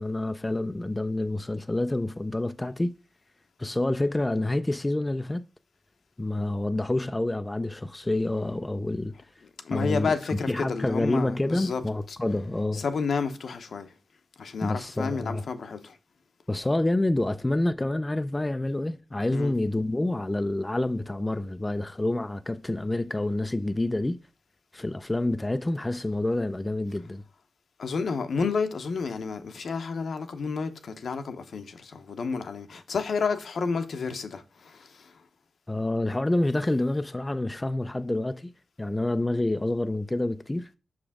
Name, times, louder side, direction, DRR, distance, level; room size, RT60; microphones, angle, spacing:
voice 1, 0.0-2.9 3.6-5.4 6.2-9.1 9.7-10.1 10.5-12.8 14.6-15.4 16.5-24.2 24.7-27.2 35.7-38.5 38.8-40.7, left 1 dB, 20° left, 0.3 m, -28 dB
voice 2, 9.4-12.4 12.7-13.9 14.4-16.0 19.3-19.5 27.8-35.2, left 5 dB, 70° left, 0.8 m, -31 dB
6.0 x 5.0 x 3.5 m
wide cardioid pair, 85°, 0 cm